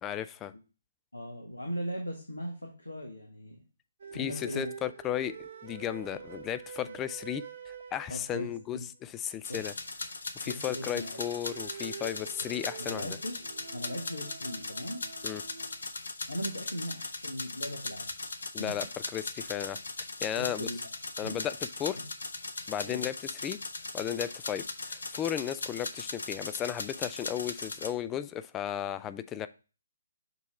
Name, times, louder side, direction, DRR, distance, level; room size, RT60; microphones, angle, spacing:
voice 1, 0.0-0.5 4.1-9.7 10.4-13.2 15.2-15.4 18.5-18.9 19.1-19.8 20.2-20.7 21.2-22.0 22.7-23.6 23.9-29.5, left 10 dB, 15° left, 13 dB, 0.3 m, -35 dB
voice 2, 1.1-3.6 4.1-4.7 6.1-6.4 6.8-7.0 8.1-8.8 9.5-9.7 10.4-11.2 12.4-12.5 12.8-13.4 13.7-15.0 16.3-18.1 18.6-18.7 20.4-20.8 21.2-21.4 22.9-23.0, equal, 85° left, 2 dB, 1.1 m, -39 dB
sound 1, 4.0-8.8 10.7-15.8, right 7 dB, 50° right, 1.0 m, -46 dB
sound 2, 9.4-27.9, left 3 dB, 65° left, 0.7 m, -39 dB
6.7 x 3.0 x 4.8 m, 0.33 s
figure-of-eight pair, 135°, 0 cm